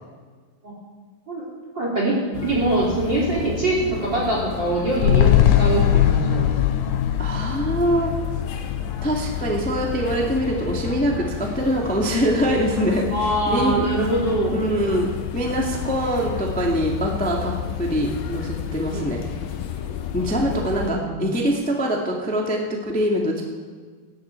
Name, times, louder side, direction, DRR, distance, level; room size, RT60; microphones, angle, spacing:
voice 1, 1.7-5.3 5.6-6.5 13.1-14.5 18.9-19.0 20.7-21.3, right 2 dB, 35° right, -3 dB, 3.4 m, -23 dB
sound 1, 2.3-20.9, left 9 dB, 90° left, 3.0 m, -31 dB
sound 2, 5.0-9.5 9.8-9.9, left 11 dB, 75° left, 1.7 m, -20 dB
voice 2, 7.2-8.1 9.0-13.9 14.5-17.5 17.8-19.2 20.1-23.4, equal, 5° left, -1 dB, 1.5 m, -23 dB
19.0 x 15.0 x 4.7 m, 1.5 s
omnidirectional pair, 4.0 m